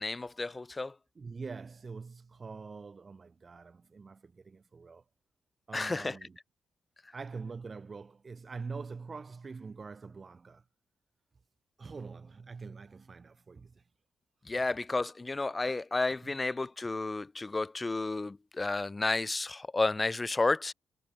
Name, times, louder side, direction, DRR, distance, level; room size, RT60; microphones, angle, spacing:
voice 1, 0.0-1.0 5.7-6.2 14.5-20.7, left 3 dB, 25° left, 0.3 m, -31 dB
voice 2, 1.1-5.0 5.7-6.4 7.1-10.6 11.8-13.8, right 4 dB, 40° right, 6.2 m, -44 dB
cardioid pair, 85°, 0 cm